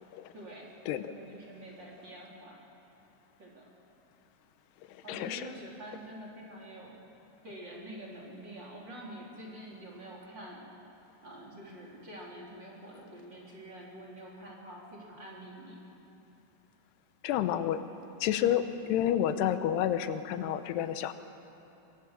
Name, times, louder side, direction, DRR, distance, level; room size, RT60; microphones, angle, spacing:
voice 1, 0.3-2.6 3.4-3.7 5.0-7.0 7.4-10.7 11.2-15.8, right 1 dB, 30° right, -3 dB, 3.7 m, -46 dB
voice 2, 5.1-5.4 17.2-17.8 18.2-18.6 18.9-21.1, left 11 dB, 90° left, 10 dB, 2.9 m, -29 dB
25.0 x 22.5 x 7.4 m, 2.9 s
omnidirectional pair, 4.8 m